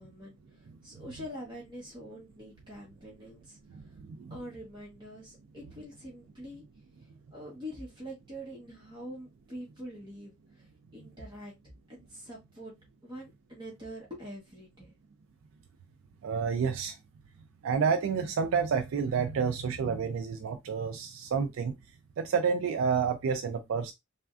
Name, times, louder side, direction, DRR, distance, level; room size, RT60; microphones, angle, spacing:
voice 1, 0.0-3.8 4.3-6.6 7.0-10.7 10.9-11.5 11.9-12.7 13.0-15.0, equal, 20° right, 1.0 m, -45 dB
voice 2, 3.7-4.3 16.2-17.0 17.6-21.7 22.2-23.9, right 6 dB, 70° right, 0.3 m, -29 dB
3.3 x 2.2 x 2.4 m
head